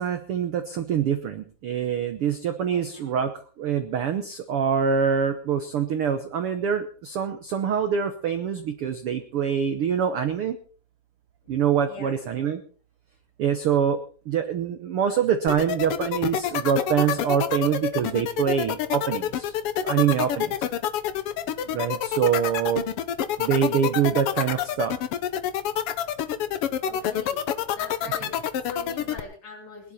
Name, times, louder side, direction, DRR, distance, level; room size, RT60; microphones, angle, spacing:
voice 1, 0.0-10.6 11.5-12.6 13.4-14.0 14.3-19.5 19.8-20.7 21.7-22.8 23.4-25.0, right 8 dB, 70° right, 8 dB, 1.3 m, -25 dB
voice 2, 2.7-3.1 11.4-11.5 11.9-12.2 26.8-29.9, left 3 dB, 50° left, -1 dB, 5.3 m, -42 dB
sound 1, 15.5-29.2, left 10 dB, 80° left, 1.3 m, -27 dB
20.0 x 11.5 x 4.3 m, 0.41 s
omnidirectional pair, 3.9 m